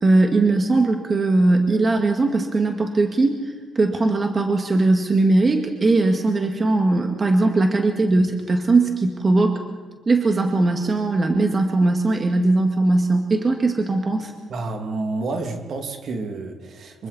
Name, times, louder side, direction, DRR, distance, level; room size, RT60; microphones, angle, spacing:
voice 1, 0.0-3.4 3.8-9.6 10.1-14.3, right 2 dB, 30° right, 4 dB, 2.0 m, -19 dB
voice 2, 14.5-17.1, right 3 dB, 60° right, 4 dB, 2.7 m, -29 dB
26.0 x 23.5 x 4.3 m, 1.4 s
cardioid pair, 90°, 0 cm